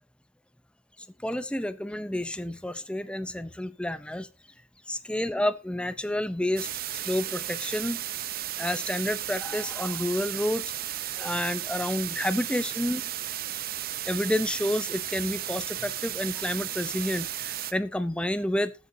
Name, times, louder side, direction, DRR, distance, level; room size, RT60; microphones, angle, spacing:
voice 1, 1.2-4.3 4.9-8.0 8.6-13.0 14.1-18.7, left 1 dB, 5° left, 0.5 m, -30 dB
sound 1, 6.6-17.7, right 12 dB, 45° right, 0.7 m, -34 dB
19.5 x 8.1 x 2.7 m
head